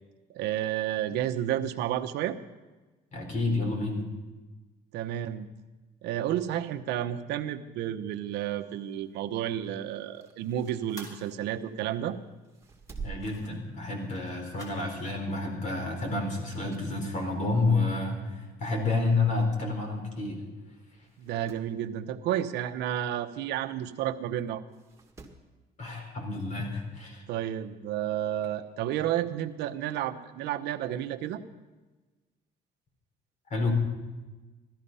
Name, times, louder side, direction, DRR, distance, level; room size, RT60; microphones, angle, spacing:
voice 1, 0.3-2.4 4.9-5.5 6.0-12.2 21.2-24.6 27.3-31.4, right 11 dB, 85° right, 7 dB, 0.9 m, -31 dB
voice 2, 3.1-4.0 13.0-20.4 25.8-27.2 33.5-33.7, left 3 dB, 45° left, 2 dB, 4.5 m, -29 dB
sound 1, 8.6-14.9, equal, 20° left, 4.7 m, -53 dB
sound 2, 10.0-12.0 12.4-14.3 14.7-14.9 16.2-17.0 17.5-17.6 18.5-18.6 18.8-18.9 19.1-19.2 20.0-20.2 20.5-20.6 21.0-21.7 23.6-23.7 24.7-25.5 26.8-26.9, right 5 dB, 15° right, 2.0 m, -47 dB
16.5 x 13.0 x 5.5 m, 1.2 s
cardioid pair, 110°, 17 cm